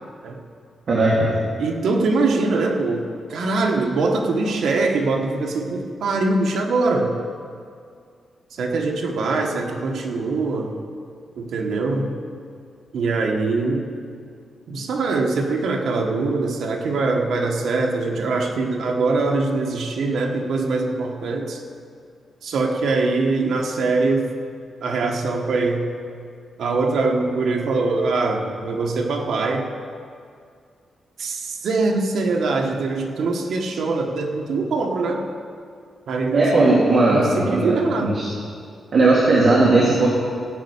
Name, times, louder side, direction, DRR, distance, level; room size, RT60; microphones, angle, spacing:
voice 1, 0.9-1.3 36.3-38.3 38.9-40.1, right 2 dB, 45° right, -6 dB, 1.9 m, -17 dB
voice 2, 1.6-7.1 8.5-10.7 11.3-12.1 12.9-13.9 14.7-21.6 22.4-24.3 24.8-25.8 26.6-29.7 31.2-35.2 36.1-36.6 37.0-38.2, right 3 dB, 75° right, 2 dB, 1.3 m, -23 dB
15.5 x 5.5 x 8.3 m, 2.2 s
wide cardioid pair, 170°, 0 cm